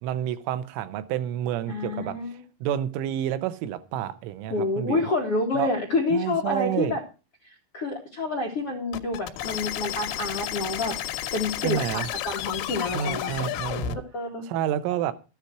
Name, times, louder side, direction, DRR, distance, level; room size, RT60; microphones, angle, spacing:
voice 1, 0.0-2.2 2.6-5.0 5.6-5.7 6.1-7.0 11.6-12.1 12.9-14.0 14.5-15.1, right 10 dB, 85° right, 3.5 m, -29 dB
voice 2, 1.7-2.4 4.5-7.0 7.4-10.9 11.3-13.4 14.1-14.4, left 2 dB, 60° left, 1.5 m, -28 dB
sound 1, 8.9-14.0, left 12 dB, 85° left, 3.5 m, -32 dB
13.5 x 9.7 x 4.7 m
omnidirectional pair, 5.6 m